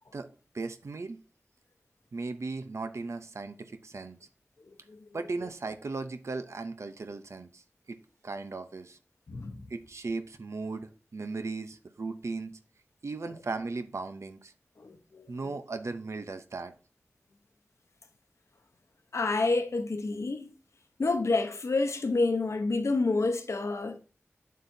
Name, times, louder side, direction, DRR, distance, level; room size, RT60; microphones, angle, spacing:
voice 1, 0.5-1.2 2.1-4.2 5.1-7.6 7.9-8.0 8.2-9.0 9.7-12.6 13.0-14.5 15.3-16.7, right 3 dB, 80° right, 0.6 m, -37 dB
voice 2, 9.3-9.6 14.8-15.5 19.1-20.5 21.0-24.0, left 3 dB, 85° left, 0.9 m, -28 dB
7.5 x 7.5 x 2.7 m
wide cardioid pair, 45°, 5 cm